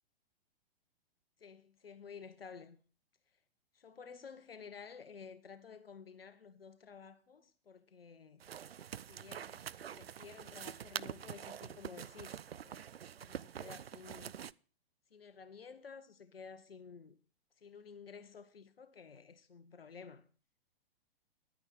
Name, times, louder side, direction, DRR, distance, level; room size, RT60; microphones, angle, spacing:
voice 1, 1.4-2.8 3.7-8.4 9.1-9.6 9.9-12.9 13.2-14.3 15.1-17.2 17.6-20.2, left 6 dB, 70° left, 1.0 m, -53 dB
sound 1, 8.4-14.5, right 9 dB, 75° right, 0.4 m, -46 dB
11.0 x 9.7 x 5.8 m
figure-of-eight pair, 110°, 30 cm